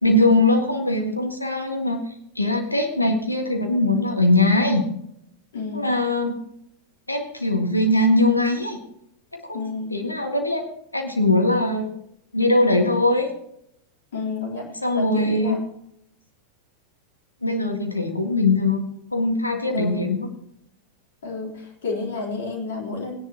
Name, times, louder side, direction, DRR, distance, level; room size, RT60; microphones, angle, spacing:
voice 1, 0.0-2.0 2.4-4.9 5.7-6.3 7.1-8.8 9.3-9.6 9.9-10.6 10.9-11.9 12.3-13.3 14.8-15.6 17.4-18.8 19.1-20.3, left 2 dB, 85° left, 3 dB, 1.8 m, -21 dB
voice 2, 5.5-5.9 9.5-10.0 14.1-15.6 19.7-20.1 21.2-23.1, left 4 dB, 60° left, -2 dB, 3.9 m, -31 dB
17.5 x 10.5 x 3.0 m, 0.74 s
figure-of-eight pair, 90°, 0 cm